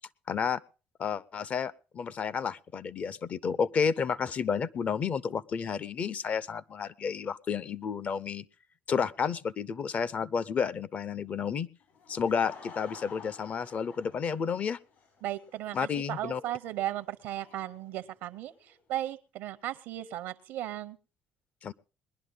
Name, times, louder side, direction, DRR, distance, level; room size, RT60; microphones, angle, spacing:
voice 1, 0.3-0.6 1.0-8.5 8.9-11.7 12.1-14.8 15.7-16.4 21.6-21.7, left 6 dB, 45° left, 20 dB, 0.6 m, -31 dB
Laughter / Crowd, 11.8-18.7, left 5 dB, 70° left, 6.4 m, -52 dB
voice 2, 15.2-21.0, right 13 dB, 85° right, 12 dB, 0.7 m, -36 dB
20.5 x 11.0 x 3.8 m, 0.34 s
cardioid pair, 95°, 3 cm